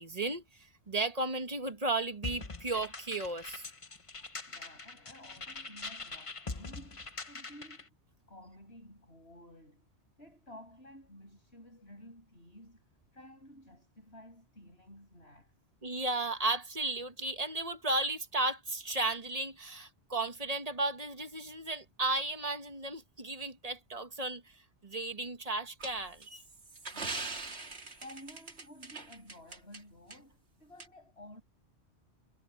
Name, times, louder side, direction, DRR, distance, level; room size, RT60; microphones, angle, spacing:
voice 1, 0.0-3.7 15.8-24.5 24.8-26.2, right 2 dB, 35° right, 1.4 m, -34 dB
sound 1, 2.2-7.9, left 3 dB, 30° left, 1.1 m, -43 dB
voice 2, 4.5-7.9 8.3-9.9 10.2-12.8 13.1-15.5 26.9-27.6 28.0-31.4, left 1 dB, 70° left, 8.2 m, -53 dB
sound 2, 25.8-29.8 30.1-30.2 30.8-30.9, right 3 dB, 70° right, 2.4 m, -42 dB
omnidirectional pair, 1.1 m